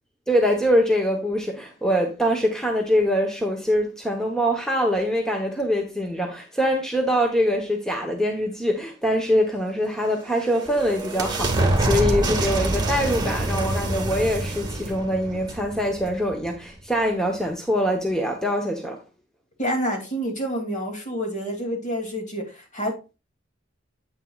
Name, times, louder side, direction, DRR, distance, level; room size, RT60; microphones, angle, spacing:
voice 1, 0.3-19.0, equal, 5° left, 0.9 m, -23 dB
sound 1, 10.0-16.5, right 2 dB, 20° right, 1.8 m, -26 dB
voice 2, 19.6-23.1, equal, 40° left, 2.5 m, -28 dB
9.1 x 8.2 x 2.3 m
head